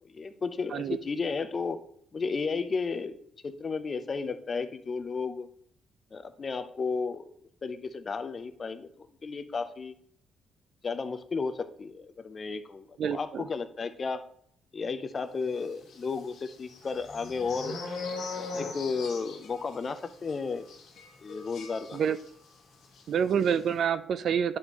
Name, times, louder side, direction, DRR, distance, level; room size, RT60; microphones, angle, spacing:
voice 1, 0.0-1.8 2.1-3.2 3.4-5.5 6.1-7.3 7.6-9.9 10.8-14.2 14.7-17.8 18.4-20.6 21.2-22.0, left 4 dB, 40° left, 11 dB, 0.5 m, -33 dB
voice 2, 13.0-13.5 21.9-22.2 23.1-24.6, right 8 dB, 65° right, 14 dB, 0.4 m, -27 dB
sound 1, 15.8-22.5 22.8-23.0 23.3-23.6, left 3 dB, 75° left, 1.4 m, -40 dB
9.7 x 4.2 x 2.9 m, 0.66 s
cardioid pair, 90°, 0 cm